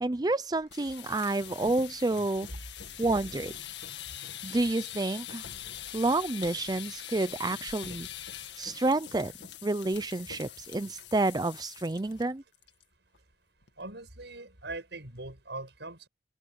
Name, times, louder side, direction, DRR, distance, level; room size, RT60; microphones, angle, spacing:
voice 1, 0.0-2.5 3.0-3.5 4.4-5.4 5.9-8.1 8.6-9.3 9.6-12.4, right 2 dB, 20° right, 0.5 m, -29 dB
sound 1, 0.6-12.2 12.5-12.8 13.1-13.2 13.6-14.0, left 10 dB, 85° left, 1.9 m, -43 dB
voice 2, 13.8-16.1, right 2 dB, 85° right, 5.3 m, -41 dB
head